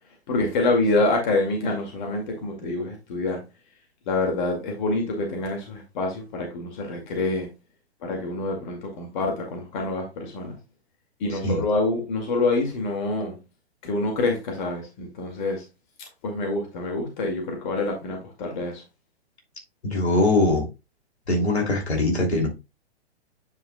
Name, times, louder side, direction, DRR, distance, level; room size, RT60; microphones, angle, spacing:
voice 1, 0.3-3.4 4.1-7.5 8.0-10.6 11.2-13.4 13.8-15.6 16.2-18.8, left 2 dB, 45° left, 2.2 m, -26 dB
voice 2, 19.8-20.7 21.3-22.5, left 2 dB, 75° left, 2.9 m, -22 dB
9.4 x 5.1 x 2.3 m
figure-of-eight pair, 115°, 33 cm